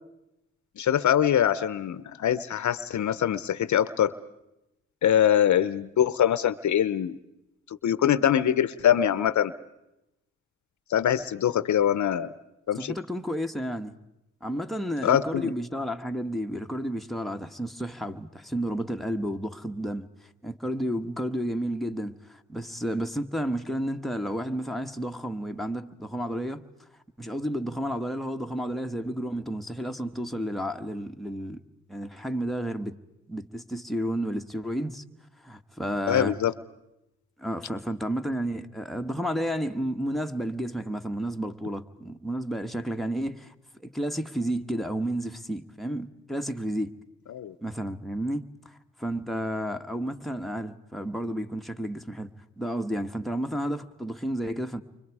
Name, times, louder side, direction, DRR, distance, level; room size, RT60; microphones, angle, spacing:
voice 1, 0.8-4.1 5.0-7.2 7.7-9.5 10.9-12.3 12.7-12.9 15.0-15.5 36.1-36.5 47.3-47.5, left 10 dB, 65° left, 0.8 m, -23 dB
voice 2, 12.8-14.0 14.4-20.1 20.4-26.6 27.2-31.6 31.9-33.0 33.3-35.0 35.4-36.4 37.4-43.5 43.8-46.9 47.6-52.3 52.6-54.8, equal, ahead, 1.3 m, -31 dB
30.0 x 24.5 x 4.8 m
cardioid pair, 70°, 31 cm